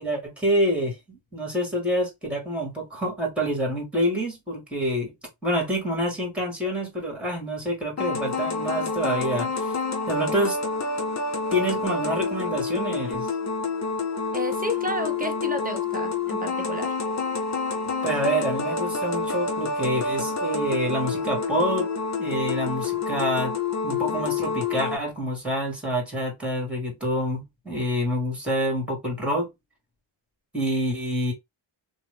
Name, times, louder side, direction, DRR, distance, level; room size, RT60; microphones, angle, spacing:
voice 1, 0.0-5.1 5.4-9.7 10.1-10.6 11.5-13.3 18.0-21.9 22.2-23.5 23.8-29.5 30.5-31.3, equal, ahead, 1.7 m, -27 dB
sound 1, 8.0-25.0, left 4 dB, 35° left, 0.8 m, -28 dB
voice 2, 14.3-16.9, equal, 20° right, 0.6 m, -31 dB
2.9 x 2.2 x 3.4 m
cardioid pair, 80°, 47 cm